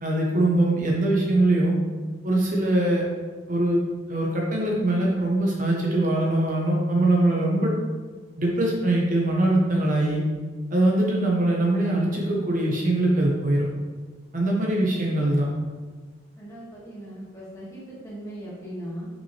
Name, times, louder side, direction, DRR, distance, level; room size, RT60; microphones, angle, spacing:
voice 1, 0.0-1.8 2.2-3.0 3.5-3.8 4.1-7.7 8.4-10.2 10.7-13.7 14.3-15.4, right 1 dB, 45° right, -2 dB, 0.9 m, -22 dB
voice 2, 16.4-19.1, equal, 15° left, -8 dB, 1.9 m, -38 dB
5.9 x 5.4 x 3.3 m, 1.4 s
head